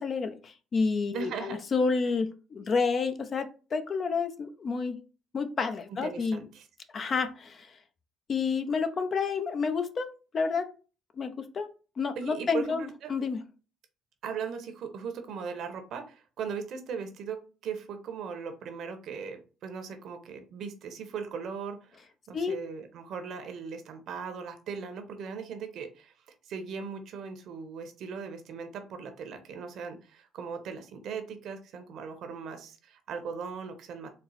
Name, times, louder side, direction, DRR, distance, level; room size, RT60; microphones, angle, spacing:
voice 1, 0.0-5.0 5.3-6.4 6.9-7.8 8.3-10.1 10.3-10.7 11.2-11.7 12.0-13.4 22.3-22.6, left 4 dB, 45° left, 8 dB, 0.6 m, -29 dB
voice 2, 1.1-1.6 6.0-6.6 12.2-13.1 14.2-17.4 17.6-22.0 22.3-26.1 26.5-34.1, right 6 dB, 65° right, 7 dB, 0.8 m, -38 dB
4.2 x 2.1 x 4.0 m, 0.35 s
cardioid pair, 90°, 0 cm